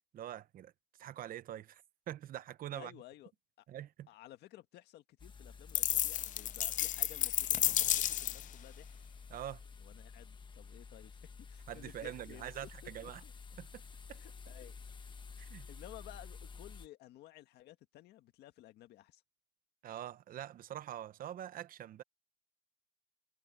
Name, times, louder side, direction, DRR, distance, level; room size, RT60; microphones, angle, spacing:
voice 1, 0.1-0.7 1.0-1.8 2.1-2.9 3.7-4.1 9.3-9.6 11.7-13.2 13.6-13.7 14.1-14.2 15.4-15.7 19.8-22.0, right 11 dB, 55° right, 1.0 m, -44 dB
voice 2, 2.7-3.3 3.6-3.7 4.1-9.0 9.8-13.3 14.1-15.2 15.4-19.2, left 14 dB, 75° left, 1.8 m, -55 dB
sound 1, 5.2-16.9, left 5 dB, 30° left, 1.4 m, -51 dB
sound 2, 5.7-8.5, left 12 dB, 50° left, 0.4 m, -32 dB
cardioid pair, 110°, 17 cm